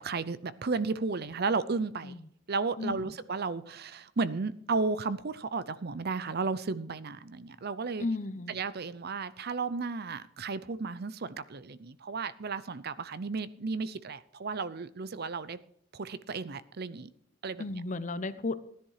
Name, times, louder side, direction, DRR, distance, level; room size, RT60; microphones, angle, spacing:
voice 1, 0.0-2.2 2.5-8.1 8.5-15.6 15.9-17.1 17.4-17.6, right 4 dB, 50° right, 16 dB, 0.6 m, -33 dB
voice 2, 8.0-8.5 17.6-18.6, left 3 dB, 40° left, 14 dB, 0.8 m, -34 dB
15.5 x 10.5 x 4.9 m, 0.68 s
head